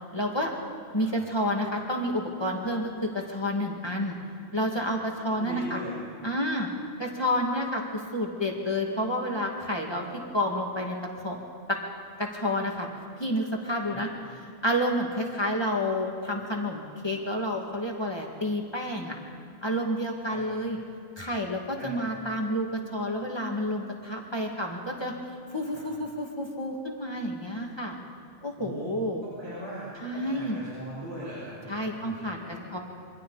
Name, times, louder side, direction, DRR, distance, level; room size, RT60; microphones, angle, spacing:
voice 1, 0.1-0.5 0.9-4.2 4.5-5.8 6.2-6.7 7.0-10.0 10.3-11.0 11.2-11.4 11.7-11.8 12.2-12.9 13.2-14.1 14.6-19.1 19.6-20.8 21.2-25.1 25.5-28.0 28.4-29.2 30.0-30.6 31.7-32.4 32.7-32.8, equal, 25° left, -1 dB, 2.2 m, -29 dB
voice 2, 5.2-5.9 7.0-7.1 13.8-14.0 20.2-20.4 21.7-22.0 25.7-25.8 28.6-32.6, equal, 85° right, -9 dB, 6.9 m, -40 dB
27.0 x 24.0 x 4.1 m, 2.5 s
omnidirectional pair, 1.1 m